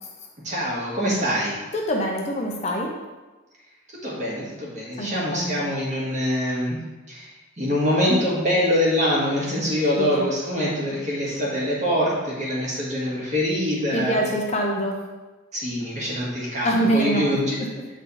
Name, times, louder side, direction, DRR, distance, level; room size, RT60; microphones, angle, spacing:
voice 1, 0.4-1.6 4.0-6.8 7.1-7.3 7.6-14.2 15.5-17.6, equal, 35° right, -5 dB, 1.7 m, -24 dB
voice 2, 1.7-2.9 5.0-5.6 10.0-10.2 13.9-15.1 16.6-17.7, right 1 dB, 30° left, 0 dB, 0.6 m, -25 dB
7.2 x 3.9 x 4.1 m, 1.2 s
head